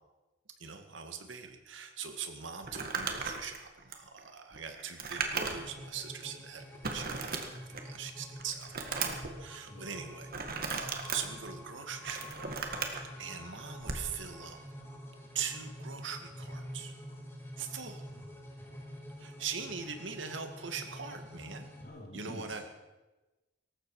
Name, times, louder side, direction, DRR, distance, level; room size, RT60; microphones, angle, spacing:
voice 1, 0.6-14.6 15.3-16.9 17.6-18.0 19.2-21.7 22.1-22.6, right 6 dB, 75° right, 6 dB, 2.0 m, -42 dB
Crumpling crinkling, 2.6-5.8 6.2-6.3 6.8-8.0 8.4-9.3 10.3-11.2 11.8-13.0 13.8-14.1, right 5 dB, 55° right, 1.9 m, -36 dB
sound 1, 5.2-21.9, equal, 15° left, 3.5 m, -47 dB
voice 2, 21.8-22.6, left 1 dB, 50° left, -1 dB, 3.2 m, -47 dB
18.0 x 15.0 x 4.8 m, 1.1 s
head